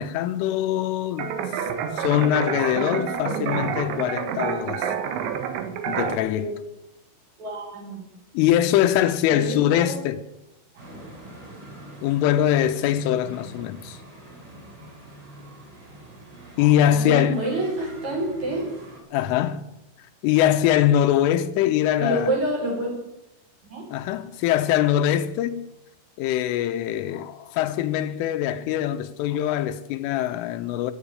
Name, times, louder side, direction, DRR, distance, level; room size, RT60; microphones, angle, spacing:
voice 1, 0.0-1.4 1.9-4.9 5.9-6.5 8.3-10.2 12.0-14.0 16.6-17.4 19.1-19.6 20.2-22.3 23.9-25.6 26.2-30.9, left 11 dB, 85° left, 3.4 m, -22 dB
sound 1, 1.2-6.2, right 7 dB, 70° right, 3.6 m, -28 dB
voice 2, 7.4-8.0 9.3-10.0 16.9-18.7 22.0-22.9 23.6-23.8, right 1 dB, 35° right, 6.5 m, -28 dB
sound 2, 10.8-19.0, right 1 dB, 50° right, 7.5 m, -44 dB
14.5 x 9.9 x 10.0 m
omnidirectional pair, 5.7 m